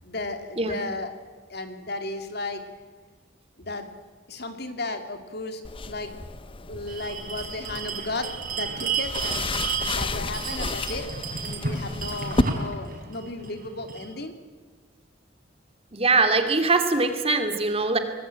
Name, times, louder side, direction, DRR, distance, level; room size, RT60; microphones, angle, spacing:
voice 1, 0.0-1.1 1.5-2.6 3.6-3.9 4.3-6.1 6.7-9.5 9.8-11.1 11.4-14.3, left 2 dB, 60° left, 7 dB, 2.6 m, -34 dB
sound 1, 5.6-12.4, left 2 dB, 30° left, 0.7 m, -32 dB
Bell, 6.9-14.1, right 5 dB, 50° right, 5.0 m, -32 dB
voice 2, 15.9-18.0, right 3 dB, 30° right, 7 dB, 2.7 m, -22 dB
25.0 x 19.5 x 9.0 m, 1.5 s
head